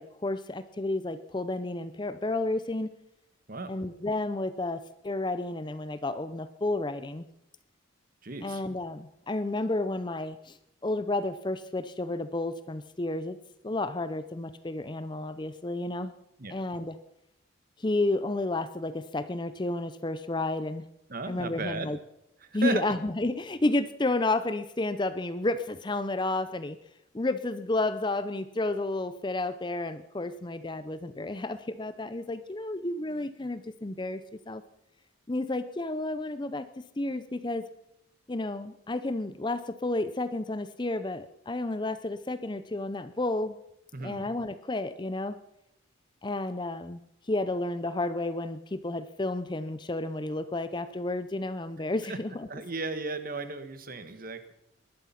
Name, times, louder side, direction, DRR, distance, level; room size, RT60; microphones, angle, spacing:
voice 1, 0.0-2.9 3.7-7.3 8.4-10.6 10.8-13.4 13.6-16.1 16.5-17.0 17.8-20.8 21.2-22.0 22.5-26.8 27.1-34.2 34.5-34.6 35.3-37.7 38.3-43.6 44.0-45.4 46.2-47.0 47.3-52.6, left 2 dB, 20° left, 12 dB, 0.6 m, -31 dB
voice 2, 8.2-8.6 16.4-16.6 21.1-21.9 22.6-22.8 43.9-44.2 52.1-52.2 52.5-54.5, right 3 dB, 45° right, 10 dB, 1.3 m, -35 dB
20.5 x 11.5 x 5.8 m, 0.82 s
head